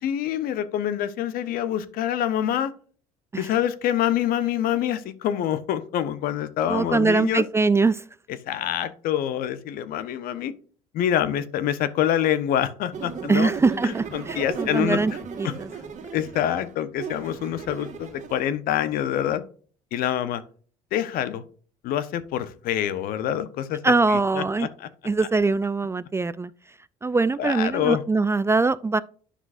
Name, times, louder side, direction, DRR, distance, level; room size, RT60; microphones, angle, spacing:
voice 1, 0.0-2.7 3.4-7.4 8.5-10.5 10.9-13.5 13.8-15.0 15.4-15.5 16.1-19.4 19.9-20.4 20.9-21.4 21.8-23.8 24.1-24.9 27.4-28.0, left 10 dB, 65° left, 0.9 m, -26 dB
voice 2, 6.7-8.0 13.3-15.1 15.4-15.7 23.8-24.7 25.0-26.5 27.0-29.0, right 3 dB, 15° right, 0.4 m, -22 dB
sound 1, 12.9-18.4, right 5 dB, 45° right, 1.7 m, -35 dB
10.0 x 5.8 x 2.6 m
hypercardioid pair, 70°, 16 cm